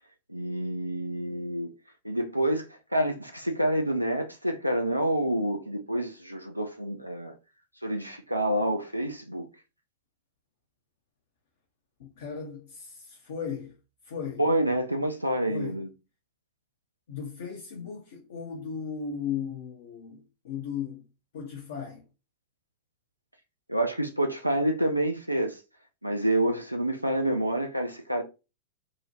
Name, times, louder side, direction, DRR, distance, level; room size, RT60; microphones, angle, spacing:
voice 1, 0.3-1.7 2.0-7.3 7.8-9.5 14.4-15.9 23.7-25.6 26.0-28.2, right 1 dB, 90° right, 0.3 m, -28 dB
voice 2, 12.0-13.8 14.0-14.4 15.5-15.8 17.1-21.1 21.3-22.1, left 7 dB, 60° left, 0.6 m, -36 dB
2.6 x 2.1 x 2.8 m
figure-of-eight pair, 90°, 0 cm